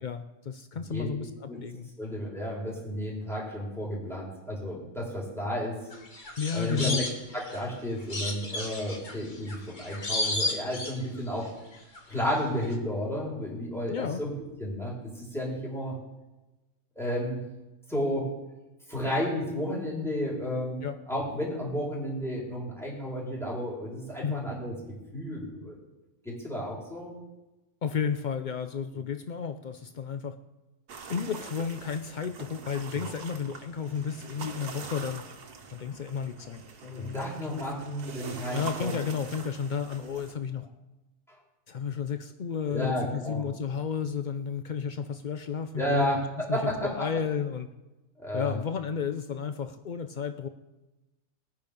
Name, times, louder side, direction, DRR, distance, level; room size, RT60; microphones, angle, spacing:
voice 1, 0.0-1.9 6.4-7.1 13.9-14.2 20.8-21.0 24.2-24.5 27.8-30.3 31.1-35.2 35.7-37.3 38.5-40.7 41.7-47.7 48.3-50.5, left 7 dB, 65° left, 9 dB, 0.4 m, -32 dB
voice 2, 0.7-1.1 1.5-1.6 2.0-5.7 6.5-7.1 7.3-11.5 12.1-14.3 14.6-16.0 17.0-17.4 17.9-18.3 18.9-20.8 21.1-24.7 25.1-25.8 26.2-27.1 36.9-38.9 42.7-43.4 45.8-47.0 48.2-48.5, equal, ahead, -5 dB, 4.7 m, -32 dB
sound 1, 5.9-7.7 8.1-11.4 11.7-12.4 12.6-12.7, left 2 dB, 30° left, 1.8 m, -33 dB
sound 2, 30.9-40.3, right 5 dB, 80° right, 1.8 m, -43 dB
20.0 x 9.9 x 5.3 m, 1.0 s
omnidirectional pair, 1.6 m